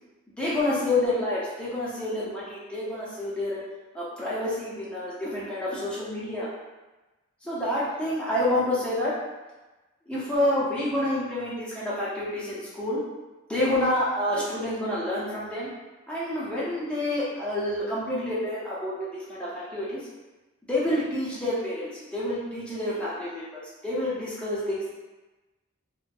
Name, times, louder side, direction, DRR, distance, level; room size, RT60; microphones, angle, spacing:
voice 1, 0.4-3.6 3.9-6.5 7.4-9.1 10.1-13.0 13.5-15.7 16.1-20.0 20.7-24.9, left 1 dB, 5° left, -9 dB, 0.6 m, -28 dB
2.6 x 2.2 x 2.3 m, 1.1 s
head